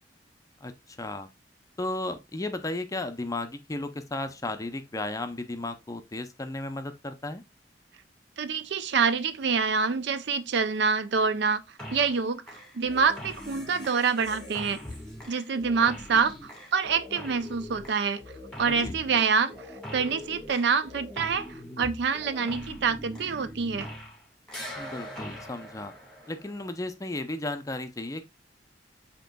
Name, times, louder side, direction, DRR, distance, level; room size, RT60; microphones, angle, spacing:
voice 1, 1.0-1.3 1.8-7.4 18.6-18.9 24.8-25.9 26.3-28.3, left 2 dB, 20° left, 0.5 m, -34 dB
voice 2, 8.4-11.6 11.9-14.8 15.3-18.2 18.6-19.5 19.9-23.9, right 5 dB, 70° right, 0.5 m, -26 dB
sound 1, 11.8-12.2 12.5-24.2 24.5-26.7, left 1 dB, 5° left, 1.6 m, -42 dB
7.7 x 2.9 x 2.2 m
head